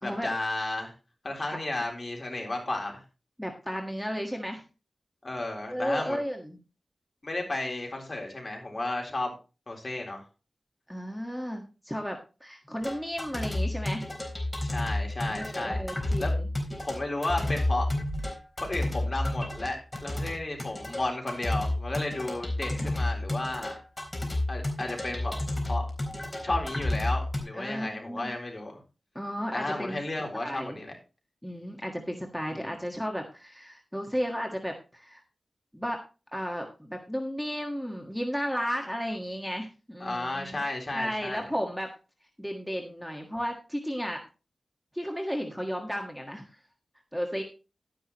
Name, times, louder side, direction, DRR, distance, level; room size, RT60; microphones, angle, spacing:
voice 1, 0.0-0.9 1.2-3.0 5.2-6.2 7.2-9.3 9.7-10.2 14.6-15.8 16.2-16.3 16.8-17.9 18.6-23.8 24.5-25.3 25.7-25.9 26.4-28.8 29.5-30.9 32.5-32.8 40.0-41.5, left 2 dB, 40° left, 1 dB, 3.8 m, -33 dB
voice 2, 3.4-4.6 5.7-6.6 10.9-14.0 15.3-16.5 22.8-22.9 27.5-28.3 29.1-30.0 30.3-30.8 31.4-35.2 35.7-36.0 36.3-40.6 40.9-41.9 42.4-44.2 44.9-46.5 47.1-47.4, equal, 5° left, 2 dB, 1.6 m, -34 dB
sound 1, 12.8-27.4, left 1 dB, 20° left, 3.8 m, -31 dB
11.5 x 10.5 x 3.0 m, 0.31 s
wide cardioid pair, 95°, 0 cm